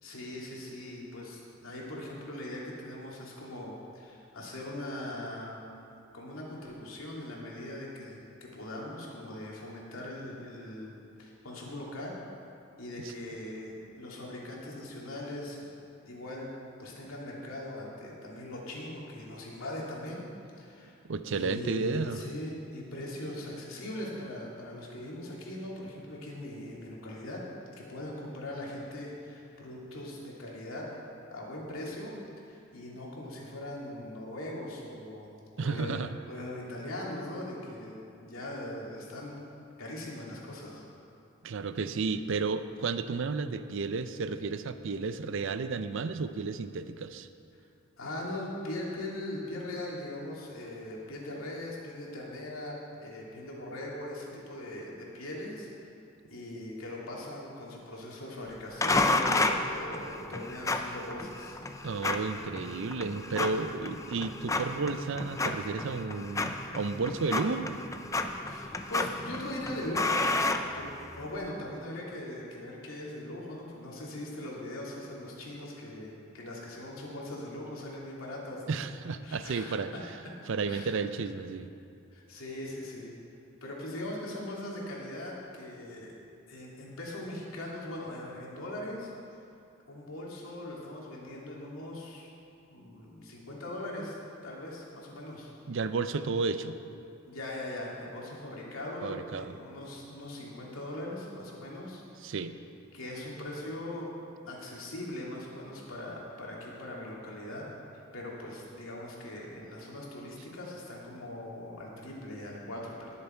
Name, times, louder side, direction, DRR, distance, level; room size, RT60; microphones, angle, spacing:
voice 1, 0.0-5.6 6.1-10.9 11.2-12.2 12.8-15.7 16.0-16.5 16.8-20.2 20.6-21.0 21.3-27.4 27.8-30.9 31.3-35.3 35.6-35.9 36.3-39.4 39.8-40.8 48.0-55.7 56.3-61.6 68.4-70.3 70.7-78.7 79.2-79.8 80.7-81.0 82.1-83.1 83.6-86.1 86.5-89.1 89.9-92.3 92.7-94.2 94.4-95.5 97.3-102.4 102.9-104.1 104.4-107.7 108.1-113.1, left 1 dB, 90° left, -4 dB, 2.7 m, -40 dB
voice 2, 21.1-22.2 35.6-36.2 41.4-47.3 61.8-67.8 78.7-79.9 80.5-81.7 95.7-96.8 99.0-99.5 102.2-102.5, right 4 dB, 65° right, 11 dB, 0.5 m, -32 dB
sound 1, 58.8-71.3, left 2 dB, 15° left, 0.5 m, -32 dB
19.5 x 7.1 x 4.5 m, 2.6 s
head